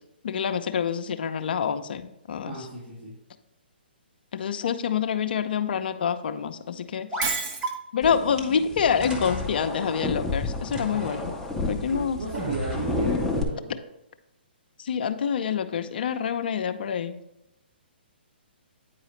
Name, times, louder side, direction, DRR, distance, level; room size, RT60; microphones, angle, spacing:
voice 1, 0.2-2.6 4.3-7.3 7.9-11.3 11.7-12.2 14.8-17.2, left 7 dB, 60° left, 9 dB, 0.6 m, -27 dB
voice 2, 2.5-3.1 11.9-13.8, right 3 dB, 70° right, -7 dB, 2.7 m, -33 dB
sound 1, 7.1-7.3 7.6-7.7 8.4-8.5 9.0-9.5 10.7-11.2 12.3-13.1, equal, 15° right, 1.2 m, -33 dB
Shatter, 7.2-7.8, right 4 dB, 35° right, 0.9 m, -29 dB
sound 2, 8.0-13.4, left 3 dB, 5° left, 0.7 m, -31 dB
9.0 x 4.8 x 3.1 m, 0.85 s
hypercardioid pair, 135°, 6 cm